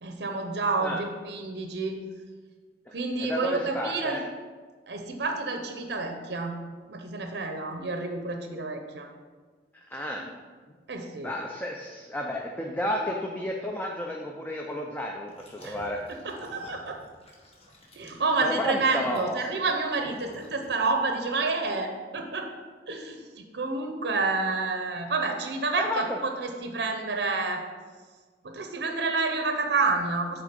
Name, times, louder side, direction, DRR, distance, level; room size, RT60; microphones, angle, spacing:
voice 1, 0.0-2.0 2.9-4.2 4.9-6.6 6.9-9.1 10.2-10.3 10.9-11.3 15.6-15.8 16.1-17.0 17.9-22.5 22.9-27.6 28.4-30.4, right 3 dB, 65° right, 4 dB, 0.7 m, -29 dB
voice 2, 3.2-4.2 9.7-10.2 11.2-16.0 18.4-19.4 25.8-26.2, left 1 dB, 10° left, 0 dB, 0.5 m, -32 dB
sound 1, 15.3-21.0, left 1 dB, 35° left, 1.3 m, -51 dB
8.7 x 3.7 x 5.2 m, 1.5 s
head